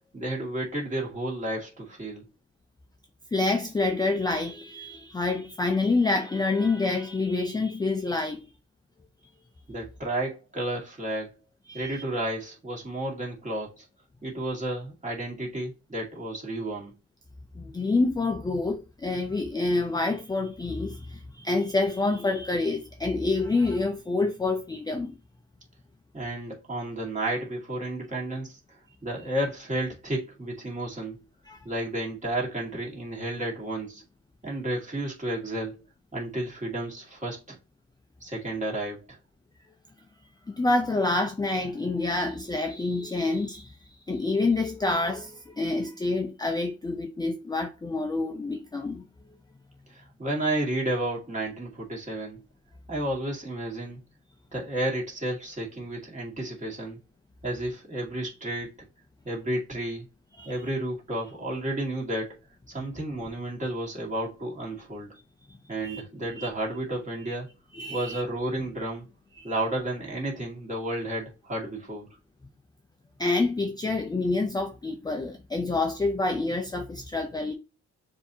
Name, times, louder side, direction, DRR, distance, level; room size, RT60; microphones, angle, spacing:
voice 1, 0.1-2.2 9.7-11.3 11.7-13.9 14.2-16.9 26.1-28.6 29.0-31.2 31.6-34.0 34.4-35.8 36.1-37.6 38.2-39.2 49.9-52.4 52.9-54.0 54.5-57.0 57.4-58.7 59.2-60.0 60.4-62.4 62.7-65.1 65.7-67.5 67.9-69.0 69.4-72.1, right 1 dB, 25° right, 2.0 m, -32 dB
voice 2, 3.3-8.4 11.7-12.0 17.6-25.2 31.5-31.6 40.5-43.8 44.1-49.1 60.4-60.5 65.8-66.0 66.3-66.5 67.7-68.2 69.4-69.5 73.2-77.5, left 3 dB, 15° left, 0.5 m, -27 dB
6.8 x 2.8 x 2.7 m
cardioid pair, 90°, 30 cm